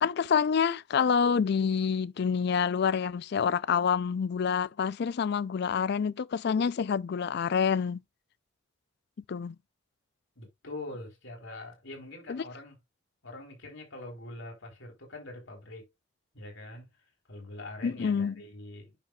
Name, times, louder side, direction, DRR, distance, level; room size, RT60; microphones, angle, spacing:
voice 1, 0.0-8.0 9.3-9.6 12.3-12.4 17.8-18.3, left 6 dB, 55° left, 0.4 m, -27 dB
voice 2, 10.4-12.8 13.2-15.9 16.3-16.9 17.3-19.0, left 2 dB, 75° left, 4.1 m, -43 dB
8.9 x 6.5 x 2.3 m
head